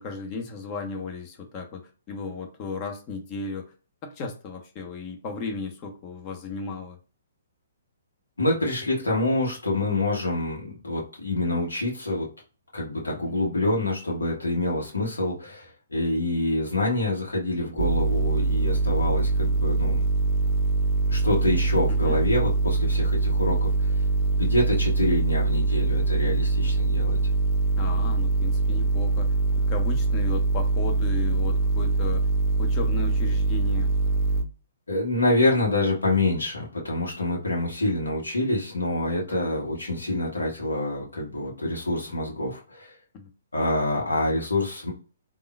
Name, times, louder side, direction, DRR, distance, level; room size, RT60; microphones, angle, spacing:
voice 1, 0.0-1.8 2.1-3.6 4.0-7.0 13.1-13.4 21.9-22.2 27.8-29.3 29.7-32.3 32.6-33.9 39.2-39.4 43.1-43.3, left 4 dB, 35° left, 3 dB, 0.8 m, -35 dB
voice 2, 8.4-12.3 12.7-20.0 21.1-24.0 24.4-27.2 34.9-43.0 43.5-44.9, left 1 dB, 80° left, -2 dB, 1.1 m, -26 dB
sound 1, 17.8-34.4, right 3 dB, 25° right, 0.6 m, -23 dB
3.5 x 2.4 x 2.2 m, 0.36 s
figure-of-eight pair, 125°, 0 cm